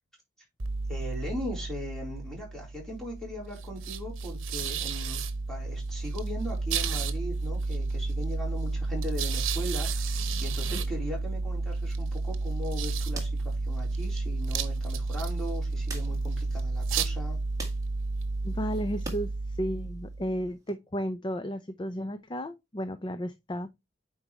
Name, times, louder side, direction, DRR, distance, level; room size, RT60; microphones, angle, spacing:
sound 1, 0.6-20.5, right 3 dB, 75° right, 1.0 m, -31 dB
voice 1, 0.9-5.2 5.5-17.4, equal, ahead, 4.0 m, -39 dB
sound 2, 12.1-19.3 19.6-20.7, right 3 dB, 20° right, 1.8 m, -48 dB
voice 2, 18.4-23.7, equal, 25° left, 0.5 m, -33 dB
8.9 x 4.8 x 3.2 m
head